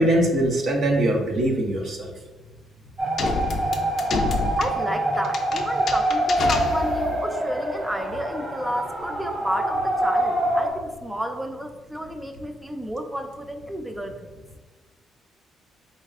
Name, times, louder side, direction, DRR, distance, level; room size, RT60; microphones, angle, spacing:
voice 1, 0.0-2.1, right 1 dB, 65° right, 1 dB, 0.8 m, -22 dB
sound 1, 3.0-10.7, right 1 dB, 40° right, 1.4 m, -25 dB
sound 2, 3.2-7.3, left 4 dB, 60° left, 0.4 m, -29 dB
voice 2, 4.6-14.3, equal, 10° right, 6 dB, 0.4 m, -31 dB
4.3 x 4.1 x 2.4 m, 1.3 s
cardioid pair, 90°, 0 cm